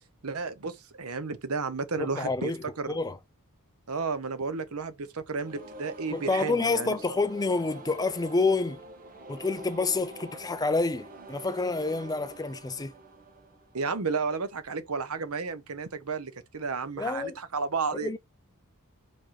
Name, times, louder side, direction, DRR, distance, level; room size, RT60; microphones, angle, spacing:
voice 1, 0.2-2.5 2.8-3.0 3.9-7.0 13.7-18.2, right 4 dB, 70° right, 0.9 m, -32 dB
voice 2, 2.0-3.2 6.1-8.8 9.3-12.9 17.0-17.4 17.9-18.2, left 3 dB, 15° left, 0.5 m, -28 dB
sound 1, 5.3-14.2, right 1 dB, 40° right, 1.4 m, -46 dB
5.2 x 3.6 x 5.7 m
head